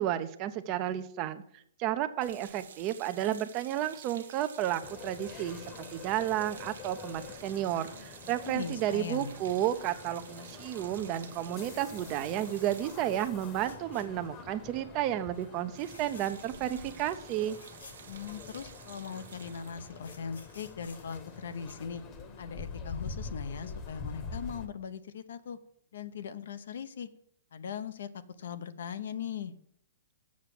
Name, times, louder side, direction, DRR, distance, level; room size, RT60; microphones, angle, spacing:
voice 1, 0.0-5.6 5.9-17.6, right 12 dB, 35° right, 11 dB, 0.6 m, -32 dB
sound 1, 2.2-14.6 14.9-15.1 15.3-21.8, right 7 dB, 75° right, 1.1 m, -52 dB
sound 2, 4.8-24.7, left 4 dB, 30° left, 1.1 m, -46 dB
voice 2, 8.4-9.3 18.1-22.0 22.4-25.6 25.9-27.1 27.5-28.1 28.4-29.5, left 7 dB, 70° left, 11 dB, 0.8 m, -39 dB
sound 3, 12.8-14.4 14.7-15.1 15.7-16.6 16.9-17.0 17.2-18.7 19.5-22.1 24.0-24.1 24.4-24.5, left 3 dB, 85° left, 2.8 m, -55 dB
7.3 x 5.9 x 7.5 m, 0.70 s
hypercardioid pair, 140°, 0 cm